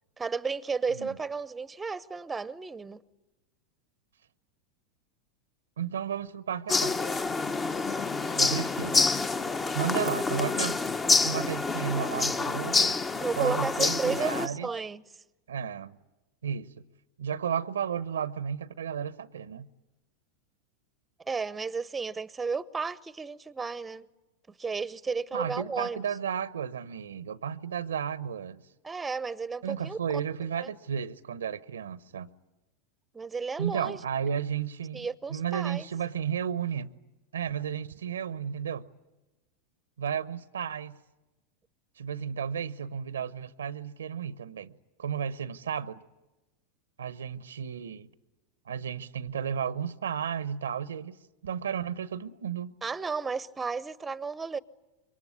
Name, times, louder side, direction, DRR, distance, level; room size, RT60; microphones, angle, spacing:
voice 1, 0.2-3.0 13.2-15.0 21.3-24.1 24.6-26.0 28.8-30.0 30.6-30.7 33.1-34.0 34.9-35.9 52.8-54.6, right 5 dB, 15° right, 0.9 m, -33 dB
voice 2, 5.8-7.1 8.4-9.0 9.7-10.8 11.2-13.0 13.4-14.7 15.5-16.0 16.4-16.7 17.2-19.7 25.3-28.6 29.6-32.3 33.6-36.9 37.3-38.9 40.0-41.0 42.0-46.0 47.0-48.1 48.7-51.2 51.4-52.7, right 8 dB, 85° right, 0.9 m, -33 dB
sound 1, 6.7-14.5, left 4 dB, 20° left, 1.0 m, -27 dB
26.5 x 23.0 x 9.7 m
hypercardioid pair, 95°, 0 cm